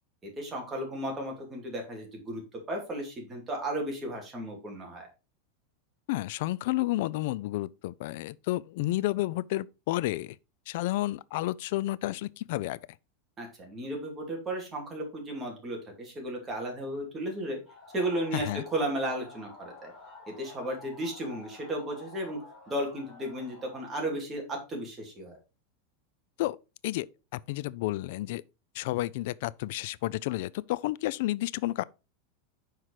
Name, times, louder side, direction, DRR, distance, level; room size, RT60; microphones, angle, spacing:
voice 1, 0.2-2.4 2.7-5.1 13.4-17.6 17.9-19.9 20.3-22.4 22.7-25.4, right 1 dB, 15° right, 2.5 m, -34 dB
voice 2, 6.1-10.4 10.7-12.8 18.3-18.6 26.4-26.6 26.8-27.1 27.3-28.4 28.7-31.8, left 17 dB, 60° left, 0.3 m, -31 dB
sound 1, 17.7-23.8, left 2 dB, 15° left, 3.3 m, -50 dB
5.8 x 4.7 x 4.6 m
supercardioid pair, 150°, 0 cm